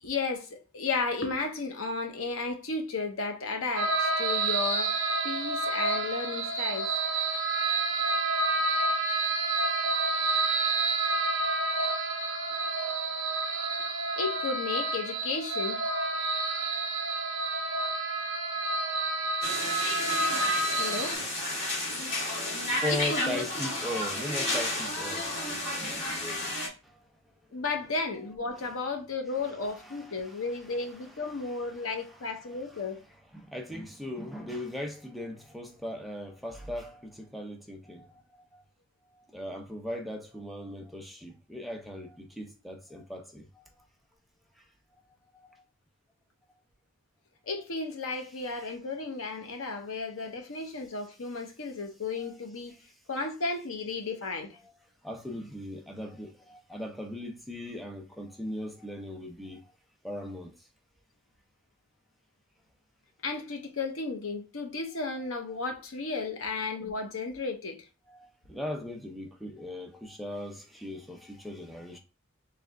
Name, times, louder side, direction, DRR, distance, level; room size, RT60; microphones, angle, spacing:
voice 1, 0.0-4.9 5.2-6.9 14.2-15.8 20.7-21.2 22.9-23.5 27.5-33.0 47.5-52.7 53.1-54.6 63.2-67.8, left 3 dB, 85° left, 0.9 m, -33 dB
sound 1, 3.8-21.1, right 3 dB, 70° right, 0.8 m, -29 dB
sound 2, 19.4-26.7, left 1 dB, 30° left, 2.0 m, -32 dB
voice 2, 22.8-26.2 26.8-27.1 28.6-28.7 29.6-30.4 31.4-32.0 33.3-38.7 39.1-43.7 44.6-44.7 45.3-45.6 52.2-52.4 55.0-59.7 60.0-60.5 65.5-65.7 68.1-72.0, left 1 dB, ahead, 0.6 m, -39 dB
3.4 x 3.3 x 3.5 m
head